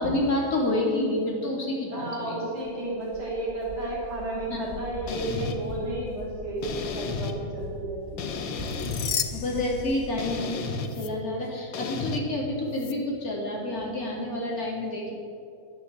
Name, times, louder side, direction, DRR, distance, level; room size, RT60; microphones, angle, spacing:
voice 1, 0.0-2.5 4.5-4.9 9.3-10.6 11.0-15.1, left 1 dB, 40° left, -2 dB, 3.0 m, -29 dB
voice 2, 1.9-8.4, right 1 dB, 45° right, -5 dB, 4.7 m, -32 dB
Walk footsteps, 2.5-7.3 7.6-10.2, right 1 dB, 20° right, 3.8 m, -42 dB
sound 1, 5.1-5.6 6.6-7.3 8.2-9.1 10.2-10.9 11.7-12.2, left 4 dB, 65° left, 1.7 m, -32 dB
sound 2, 8.5-10.5 10.9-11.1 12.7-12.9, left 8 dB, 85° left, 0.6 m, -34 dB
11.0 x 9.5 x 8.0 m, 2.6 s
omnidirectional pair, 2.4 m